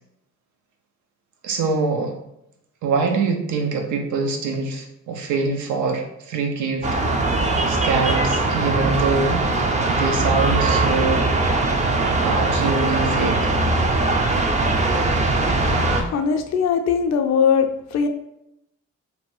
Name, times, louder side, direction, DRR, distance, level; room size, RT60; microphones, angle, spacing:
voice 1, 1.4-2.2 2.8-6.9 7.7-9.4 10.0-11.3 12.2-13.5, right 4 dB, 85° right, 3 dB, 0.6 m, -24 dB
sound 1, 6.8-16.0, right 2 dB, 25° right, 0.4 m, -20 dB
voice 2, 16.0-18.1, left 6 dB, 65° left, 6 dB, 0.5 m, -20 dB
2.7 x 2.2 x 3.0 m, 0.81 s
cardioid pair, 85°, 29 cm